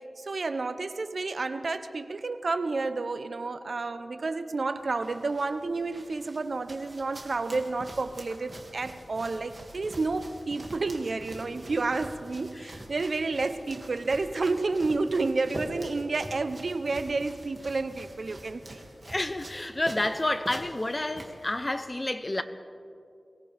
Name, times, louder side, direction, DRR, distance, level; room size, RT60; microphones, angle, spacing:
voice 1, 0.0-18.8, right 3 dB, 60° right, 0.7 m, -30 dB
sound 1, 4.8-21.8, right 1 dB, 35° right, 2.1 m, -45 dB
voice 2, 19.1-22.4, left 1 dB, 25° left, 0.7 m, -30 dB
23.5 x 18.0 x 3.4 m
wide cardioid pair, 105°, 0 cm